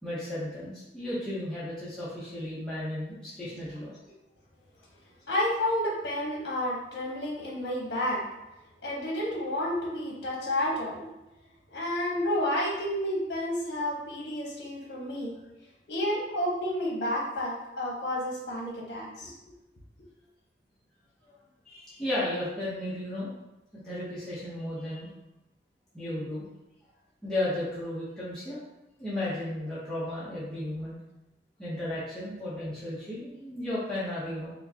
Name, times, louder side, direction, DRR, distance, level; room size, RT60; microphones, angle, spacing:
voice 1, 0.0-4.0 21.2-21.3 21.7-23.4 23.8-25.1 25.9-26.4 27.2-28.6 29.0-31.0 31.6-34.5, left 1 dB, 5° left, -11 dB, 0.7 m, -34 dB
voice 2, 5.3-8.2 8.8-11.1 11.7-15.3 15.9-19.3, left 1 dB, 70° left, -3 dB, 0.9 m, -30 dB
4.6 x 2.1 x 2.7 m, 0.95 s
head